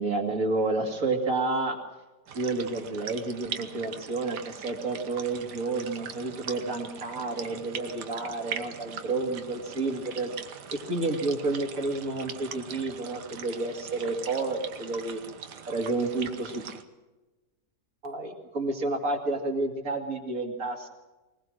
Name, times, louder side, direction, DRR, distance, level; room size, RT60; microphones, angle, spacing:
voice 1, 0.0-1.8 2.3-10.3 10.7-15.2 15.7-16.6 18.0-20.9, right 3 dB, 55° right, 4 dB, 2.7 m, -30 dB
sound 1, 2.3-16.8, right 7 dB, 80° right, 1.8 m, -41 dB
20.5 x 20.0 x 6.3 m, 1.1 s
omnidirectional pair, 1.8 m